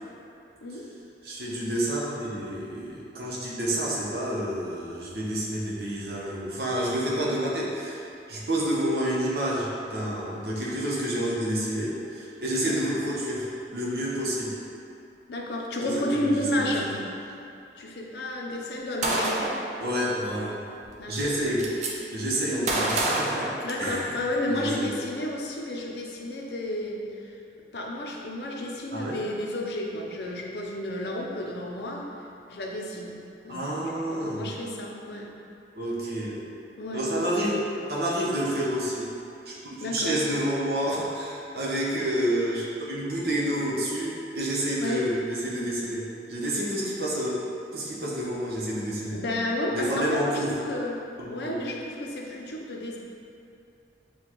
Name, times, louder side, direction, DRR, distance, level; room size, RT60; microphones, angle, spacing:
voice 1, 1.2-8.0 8.3-14.6 15.8-16.7 19.8-20.5 21.1-21.7 22.1-23.5 23.8-24.1 24.5-24.9 28.9-29.3 33.5-34.5 35.7-36.4 36.9-37.6 37.9-39.1 39.4-46.0 46.3-47.3 47.7-49.2 49.7-50.5 51.2-51.6, right 1 dB, 60° right, -5 dB, 0.8 m, -29 dB
voice 2, 15.3-16.9 17.8-19.4 21.0-21.2 22.5-22.7 23.6-27.4 27.7-32.1 32.5-33.2 33.4-33.7 34.0-35.3 36.8-37.0 39.8-40.1 44.8-45.1 49.1-51.0 51.3-53.0, left 1 dB, 70° left, -1 dB, 0.5 m, -31 dB
Gunshot gunfire, 19.0-19.7 20.8-20.9 21.2-21.9 22.7-24.2, right 2 dB, 40° right, 0.5 m, -27 dB
6.8 x 2.3 x 2.9 m, 2.6 s
head